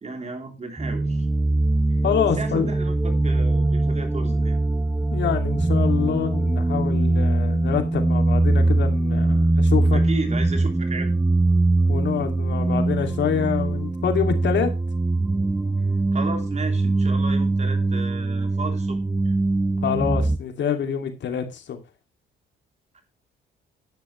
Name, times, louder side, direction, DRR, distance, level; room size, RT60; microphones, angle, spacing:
voice 1, 0.0-1.3 2.4-4.6 9.9-11.1 15.8-15.9 16.1-19.0 19.2-19.3 22.9-23.0, right 3 dB, 35° right, 3.2 m, -34 dB
sound 1, 0.8-20.4, right 2 dB, 10° right, 0.6 m, -22 dB
voice 2, 2.0-2.7 5.1-10.0 11.9-14.7 19.8-21.8, left 8 dB, 65° left, 2.5 m, -26 dB
10.5 x 10.5 x 3.2 m
cardioid pair, 90°, 20 cm